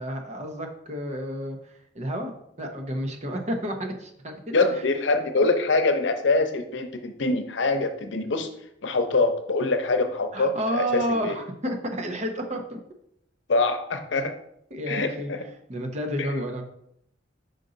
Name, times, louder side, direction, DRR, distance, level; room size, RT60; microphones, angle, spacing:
voice 1, 0.0-1.6 1.9-2.3 2.6-4.3 10.3-12.8 14.7-15.3 15.7-16.6, equal, 40° right, 3 dB, 0.9 m, -30 dB
voice 2, 4.5-8.5 8.8-11.4 13.5-14.3 14.9-15.4 16.2-16.3, left 3 dB, 85° left, 6 dB, 0.7 m, -24 dB
5.3 x 5.2 x 3.9 m, 0.74 s
head